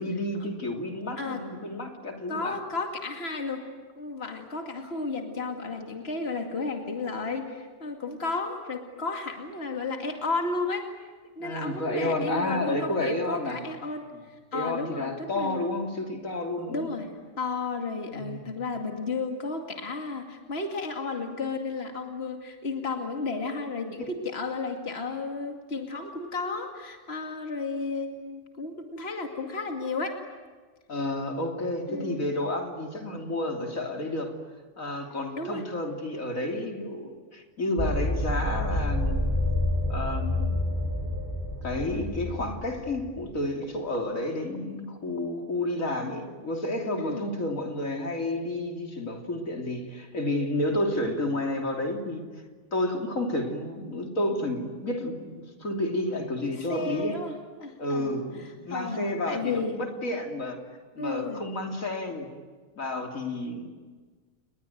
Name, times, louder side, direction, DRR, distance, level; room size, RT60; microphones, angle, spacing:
voice 1, 0.0-2.6 11.4-13.6 14.5-17.0 18.1-18.5 24.0-24.1 30.9-34.4 34.8-39.2 39.9-40.4 41.6-52.2 52.7-57.2 57.8-60.6 61.0-62.3 62.8-63.7, left 1 dB, 80° left, 3 dB, 3.6 m, -31 dB
voice 2, 2.3-3.7 4.0-10.9 11.4-15.7 16.7-17.1 17.4-30.2 31.9-32.2 35.4-35.6 47.0-47.2 56.6-57.3 57.6-59.8 61.0-61.4, left 3 dB, 50° left, 4 dB, 2.7 m, -33 dB
sound 1, 37.8-43.2, left 1 dB, 15° left, 7.3 m, -28 dB
30.0 x 21.5 x 9.3 m, 1.4 s
omnidirectional pair, 1.4 m